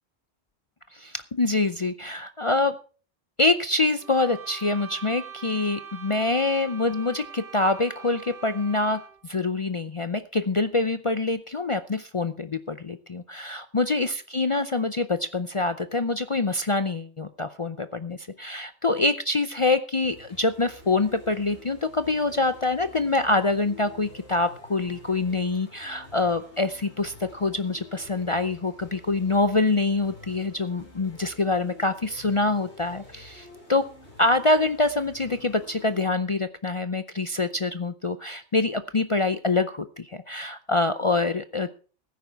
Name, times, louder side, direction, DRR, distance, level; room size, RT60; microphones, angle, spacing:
voice 1, 0.9-2.8 3.4-33.9 34.2-41.7, left 3 dB, 35° left, 11 dB, 0.5 m, -25 dB
sound 1, 4.0-9.3, right 7 dB, 80° right, 1.9 m, -43 dB
sound 2, 20.0-36.0, left 3 dB, 80° left, 4.7 m, -49 dB
15.5 x 9.4 x 4.6 m, 0.38 s
omnidirectional pair, 1.1 m